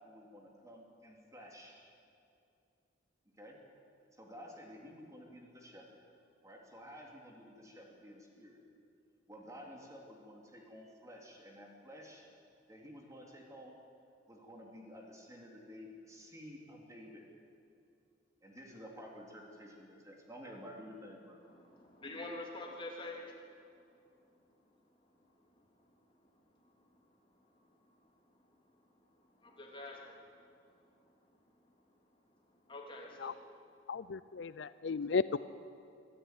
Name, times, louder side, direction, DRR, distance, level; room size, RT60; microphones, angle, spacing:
voice 1, 0.0-1.9 3.4-3.6 4.1-5.8 6.4-8.6 9.3-12.3 12.7-13.8 14.3-17.2 18.4-21.4, equal, 20° right, 0 dB, 3.4 m, -52 dB
voice 2, 21.6-23.4 29.4-30.2 32.7-33.4, left 2 dB, 30° left, -1 dB, 3.3 m, -46 dB
voice 3, 33.9-35.4, left 5 dB, 70° left, 16 dB, 0.5 m, -34 dB
25.0 x 13.0 x 9.4 m, 2.4 s
head